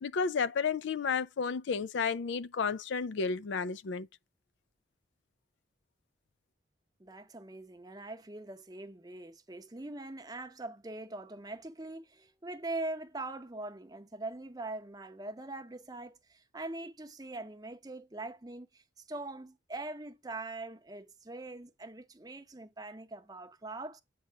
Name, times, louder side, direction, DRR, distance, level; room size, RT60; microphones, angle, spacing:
voice 1, 0.0-4.1, left 5 dB, 75° left, 0.4 m, -32 dB
voice 2, 7.0-24.0, right 2 dB, 20° right, 0.7 m, -42 dB
8.7 x 3.0 x 4.6 m
head